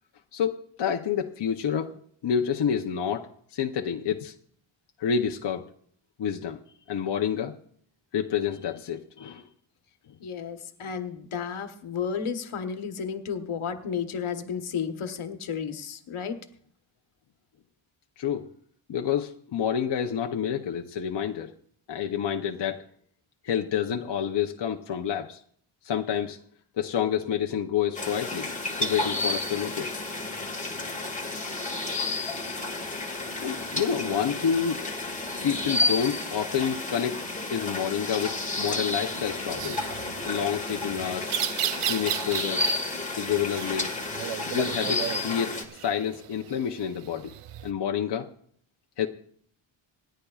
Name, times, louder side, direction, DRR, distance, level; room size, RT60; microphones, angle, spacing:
voice 1, 0.3-4.3 5.0-5.7 6.2-6.6 6.9-7.6 8.1-9.5 18.2-18.5 18.9-21.5 21.9-22.8 23.4-25.4 25.8-26.4 26.8-28.5 28.8-30.0 33.4-34.8 35.3-37.2 37.5-39.9 40.2-41.3 41.9-42.7 43.2-44.0 44.5-45.6 45.8-47.3 47.6-48.3 49.0-49.1, left 8 dB, 55° left, 2 dB, 0.7 m, -28 dB
voice 2, 10.2-16.4, left 7 dB, 80° left, 7 dB, 1.2 m, -32 dB
sound 1, 27.9-45.6, left 2 dB, 15° left, 1.6 m, -31 dB
sound 2, 39.1-47.7, right 10 dB, 85° right, 0.7 m, -35 dB
27.0 x 10.0 x 2.4 m, 0.64 s
wide cardioid pair, 165°, 49 cm